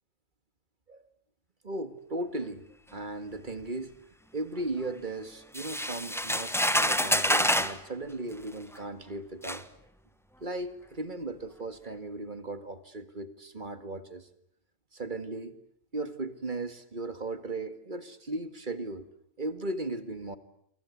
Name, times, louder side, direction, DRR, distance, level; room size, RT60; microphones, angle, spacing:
voice 1, 1.6-2.6 2.9-3.9 4.3-9.6 10.4-14.3 14.9-15.6 15.9-19.1 19.4-20.4, right 2 dB, 35° right, 10 dB, 2.0 m, -36 dB
sound 1, 5.5-7.8 8.7-8.8 9.4-9.6, equal, ahead, 1.0 m, -27 dB
29.0 x 24.0 x 8.5 m, 0.70 s
omnidirectional pair, 1.5 m